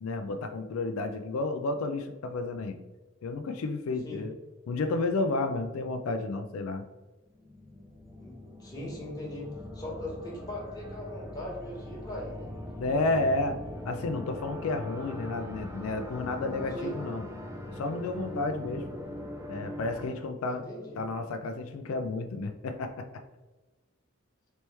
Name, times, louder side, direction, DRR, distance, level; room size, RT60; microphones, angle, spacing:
voice 1, 0.0-2.8 3.2-4.4 4.7-6.8 12.8-13.6 13.8-17.3 17.8-18.9 19.5-20.7 21.0-23.2, left 3 dB, 85° left, 6 dB, 0.4 m, -31 dB
sound 1, 7.3-20.1, left 1 dB, 15° right, 0.4 m, -41 dB
voice 2, 8.2-9.5 9.7-12.5 16.7-16.9 20.5-21.0, left 1 dB, 20° left, -4 dB, 1.2 m, -39 dB
4.2 x 3.0 x 3.3 m, 1.2 s
head